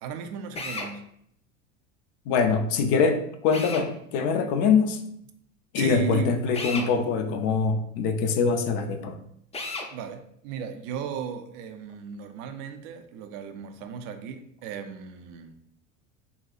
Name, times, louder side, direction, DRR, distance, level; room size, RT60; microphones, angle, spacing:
voice 1, 0.0-1.0 5.8-6.3 9.9-15.6, right 7 dB, 55° right, 0.5 m, -36 dB
Drill, 0.5-0.9 3.5-3.9 6.5-6.9 9.5-9.9, left 3 dB, 15° left, 0.5 m, -33 dB
voice 2, 2.3-5.0 5.7-9.2, left 5 dB, 60° left, 0.6 m, -24 dB
4.1 x 2.3 x 2.4 m
hypercardioid pair, 85°, 38 cm